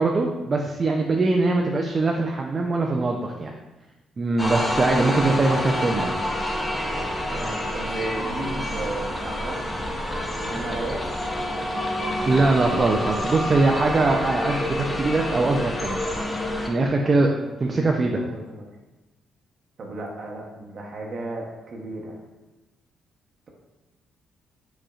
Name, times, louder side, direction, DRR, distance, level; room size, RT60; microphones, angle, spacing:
voice 1, 0.0-3.5 4.2-6.3 12.2-16.0 16.7-17.3 17.6-18.2, right 3 dB, 35° right, 1 dB, 0.4 m, -22 dB
sound 1, 4.4-16.7, left 1 dB, 20° left, 0.7 m, -28 dB
voice 2, 7.3-11.1 17.0-18.7 19.8-22.2, right 2 dB, 50° right, -1 dB, 0.8 m, -35 dB
4.9 x 4.2 x 2.4 m, 1.1 s
cardioid pair, 90°, 0 cm